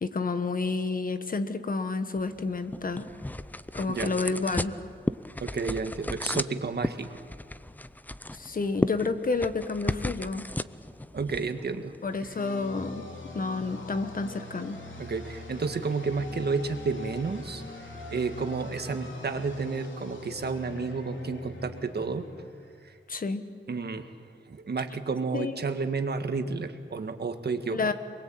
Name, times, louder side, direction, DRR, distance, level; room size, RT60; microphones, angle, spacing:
voice 1, 0.0-3.1 3.7-4.7 8.3-10.5 12.0-13.1 13.3-14.8 23.1-23.4 25.3-25.5 27.7-27.9, left 3 dB, 45° left, 9 dB, 1.5 m, -30 dB
sound 1, 2.2-12.4, left 1 dB, 10° left, 0.6 m, -35 dB
voice 2, 5.4-7.2 11.1-11.9 15.0-17.6 18.1-22.3 22.8-22.9 23.7-24.1 24.5-27.9, right 4 dB, 55° right, 7 dB, 1.8 m, -31 dB
sound 2, 12.3-23.0, left 2 dB, 80° left, 3.8 m, -43 dB
27.5 x 22.0 x 8.8 m, 2.1 s
wide cardioid pair, 145°, 20 cm